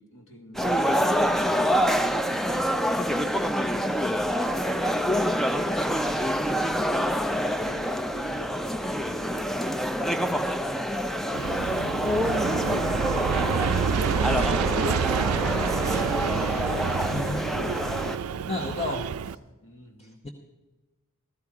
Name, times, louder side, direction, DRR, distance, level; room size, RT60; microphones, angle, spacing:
voice 1, 0.0-3.8 4.3-6.1 7.5-11.6 18.1-19.2 19.6-20.2, right 1 dB, 60° left, 3 dB, 2.0 m, -47 dB
sound 1, 0.5-18.2, equal, ahead, 0.4 m, -26 dB
Aircraft, 11.3-19.3, right 7 dB, 70° right, 0.4 m, -28 dB
voice 2, 17.1-17.5 18.5-19.0 20.0-20.3, left 2 dB, 30° left, 3 dB, 0.9 m, -31 dB
15.5 x 13.5 x 4.8 m, 1.1 s
head